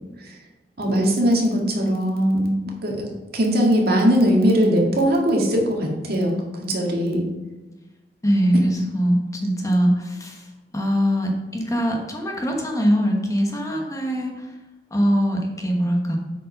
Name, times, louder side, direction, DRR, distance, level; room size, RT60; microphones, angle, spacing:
voice 1, 0.8-2.6 2.8-3.1 3.3-6.3 6.7-7.2 8.7-8.8, equal, 60° right, -1 dB, 1.9 m, -20 dB
voice 2, 8.2-14.6 14.9-16.2, equal, 20° left, 1 dB, 1.2 m, -22 dB
7.8 x 5.3 x 5.6 m, 1.1 s
head